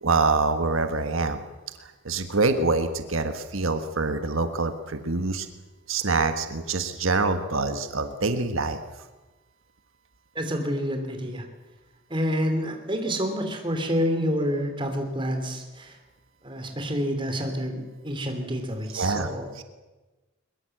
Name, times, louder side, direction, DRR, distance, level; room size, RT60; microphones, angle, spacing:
voice 1, 0.0-1.4 1.8-5.5 5.9-8.8 18.9-19.3 19.5-19.6, right 3 dB, 85° right, 8 dB, 1.5 m, -25 dB
voice 2, 10.3-11.4 12.1-16.0 16.4-19.6, equal, 25° right, 5 dB, 3.1 m, -28 dB
22.0 x 21.5 x 7.9 m, 1.2 s
head